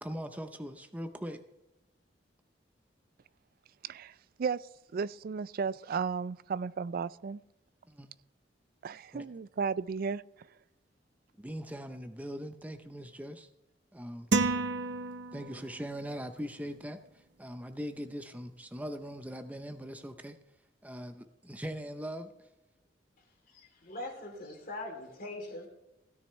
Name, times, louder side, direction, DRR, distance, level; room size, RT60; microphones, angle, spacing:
voice 1, 0.0-1.4 7.9-8.1 9.1-9.3 11.4-13.5 13.9-14.3 15.3-20.4 20.8-22.3, equal, 10° right, 0.6 m, -41 dB
voice 2, 3.8-4.6 4.9-7.4 8.8-10.2, right 5 dB, 55° right, 0.4 m, -34 dB
sound 1, 14.3-15.8, right 3 dB, 75° right, 0.8 m, -30 dB
voice 3, 23.5-25.7, left 2 dB, 55° left, 3.2 m, -42 dB
16.5 x 9.8 x 3.2 m
head